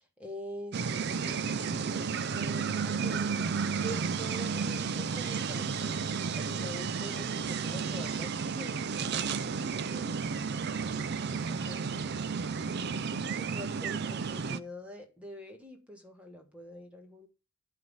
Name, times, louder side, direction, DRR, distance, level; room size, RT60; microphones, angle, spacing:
voice 1, 0.2-12.3 13.3-17.3, equal, 5° right, 1.4 m, -46 dB
sound 1, 0.7-14.6, right 5 dB, 50° right, 0.5 m, -32 dB
10.5 x 3.6 x 5.5 m
head